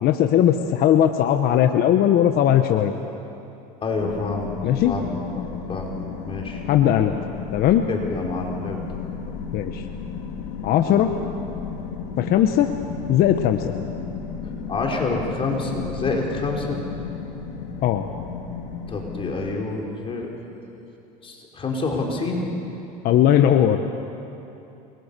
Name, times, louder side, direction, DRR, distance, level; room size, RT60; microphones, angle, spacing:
voice 1, 0.0-2.9 4.6-5.0 6.7-7.1 7.5-7.9 9.5-9.8 10.6-11.1 12.2-12.7 13.1-13.7 17.8-18.1 23.0-23.8, left 10 dB, 50° left, 7 dB, 1.2 m, -18 dB
voice 2, 3.8-4.5 4.9-5.9 6.2-6.6 7.9-8.8 10.9-11.1 14.7-16.8 18.9-20.3 21.2-22.5, left 3 dB, 25° left, 0 dB, 4.3 m, -27 dB
sound 1, 4.0-19.4, left 6 dB, 70° left, 3.4 m, -34 dB
28.5 x 22.5 x 6.9 m, 2.9 s
supercardioid pair, 115°, 20 cm